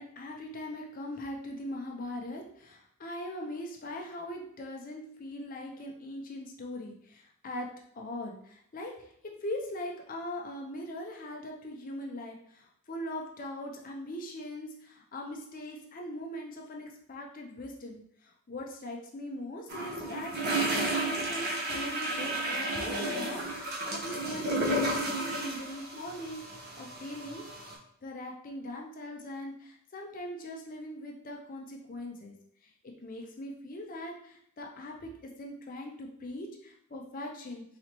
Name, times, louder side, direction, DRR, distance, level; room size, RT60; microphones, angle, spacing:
voice 1, 0.0-7.7 7.9-9.1 9.4-27.4 28.0-32.3 33.0-37.6, left 1 dB, 40° left, 1 dB, 0.5 m, -41 dB
sound 1, 19.7-27.7, right 1 dB, 45° right, 0.9 m, -32 dB
3.9 x 3.1 x 2.9 m, 0.68 s
head